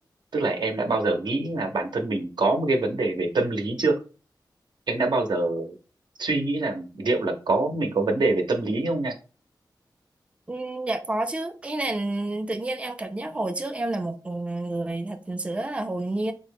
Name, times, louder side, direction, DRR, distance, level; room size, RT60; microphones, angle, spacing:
voice 1, 0.3-3.9 4.9-5.8 6.2-9.1, right 2 dB, 75° right, 0.7 m, -25 dB
voice 2, 10.5-16.3, right 2 dB, 15° right, 0.4 m, -29 dB
3.8 x 2.0 x 3.4 m
wide cardioid pair, 80°, 8 cm